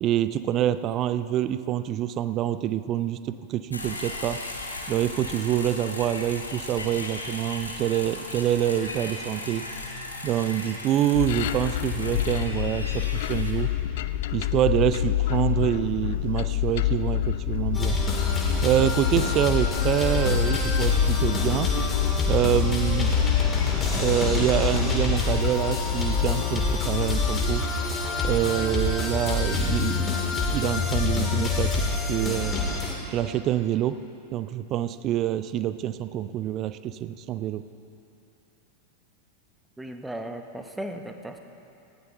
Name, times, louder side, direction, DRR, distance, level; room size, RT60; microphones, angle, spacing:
voice 1, 0.0-4.4 4.9-9.6 10.2-13.7 14.3-18.0 18.6-21.7 22.3-23.2 23.9-27.7 28.2-32.6 33.1-34.0 34.3-37.6, right 11 dB, 35° right, 13 dB, 0.4 m, -26 dB
sound 1, 3.7-13.5, left 2 dB, 80° left, 1.3 m, -36 dB
sound 2, 11.1-27.4, left 14 dB, 55° left, 0.4 m, -28 dB
sound 3, 17.7-32.9, left 3 dB, 20° left, 2.2 m, -26 dB
voice 2, 39.8-41.4, right 1 dB, 5° right, 6 dB, 0.9 m, -36 dB
18.5 x 15.5 x 2.6 m, 2.7 s
figure-of-eight pair, 90°, 0 cm